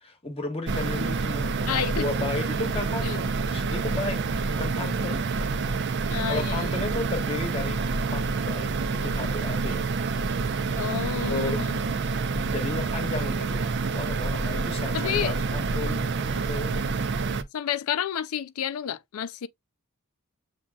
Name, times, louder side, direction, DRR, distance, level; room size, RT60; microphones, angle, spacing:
voice 1, 0.0-5.3 6.3-9.8 11.2-11.7 12.5-16.8, left 2 dB, 25° left, 1.1 m, -34 dB
sound 1, 0.7-17.4, right 4 dB, 50° right, 0.5 m, -28 dB
voice 2, 1.6-2.0 3.0-3.2 6.1-6.6 10.7-11.8 14.9-15.4 17.5-19.5, left 9 dB, 70° left, 0.4 m, -30 dB
7.1 x 2.8 x 2.3 m
head